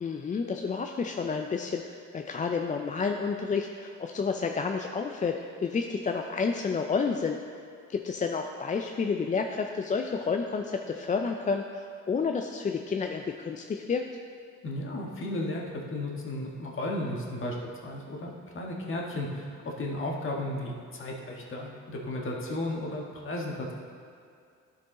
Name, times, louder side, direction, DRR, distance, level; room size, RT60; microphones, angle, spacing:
voice 1, 0.0-7.4 7.9-14.0, left 5 dB, 25° left, 3 dB, 0.4 m, -30 dB
voice 2, 14.6-17.5 17.8-23.7, left 1 dB, 40° left, -1 dB, 1.5 m, -34 dB
11.5 x 4.7 x 3.7 m, 2.3 s
cardioid pair, 90°, 30 cm